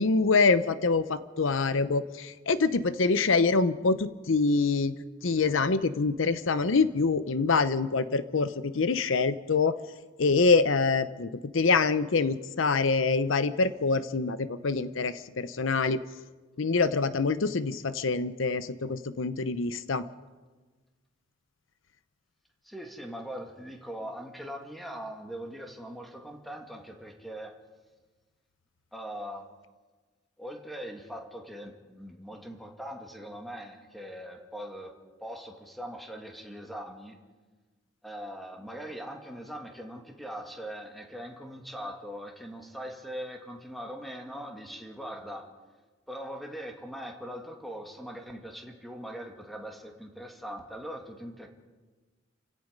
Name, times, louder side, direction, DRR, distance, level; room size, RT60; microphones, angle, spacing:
voice 1, 0.0-4.9 5.2-9.8 10.2-16.0 16.6-20.0, left 4 dB, 75° left, 13 dB, 0.7 m, -25 dB
voice 2, 22.6-27.6 28.9-29.5 30.4-34.9 35.2-37.2 38.0-45.5 46.1-51.5, equal, ahead, 2 dB, 2.2 m, -41 dB
30.0 x 16.5 x 5.3 m, 1.3 s
head